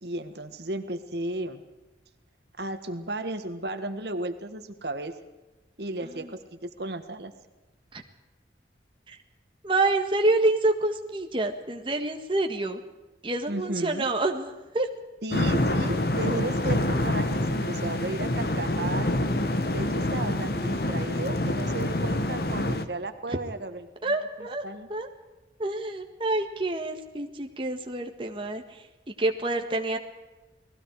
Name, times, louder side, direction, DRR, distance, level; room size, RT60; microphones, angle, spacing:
voice 1, 0.0-1.6 2.6-5.1 5.8-7.3 13.5-14.1 15.2-19.1 19.7-24.2 24.6-24.9, right 2 dB, 70° right, 8 dB, 1.6 m, -34 dB
voice 2, 9.6-12.8 13.2-14.9 23.3-23.4 24.0-24.6 24.9-25.1 25.6-30.0, right 2 dB, 30° right, 4 dB, 1.7 m, -27 dB
sound 1, 15.3-22.8, left 1 dB, 60° left, 1.4 m, -26 dB
30.0 x 19.5 x 4.8 m, 1.1 s
head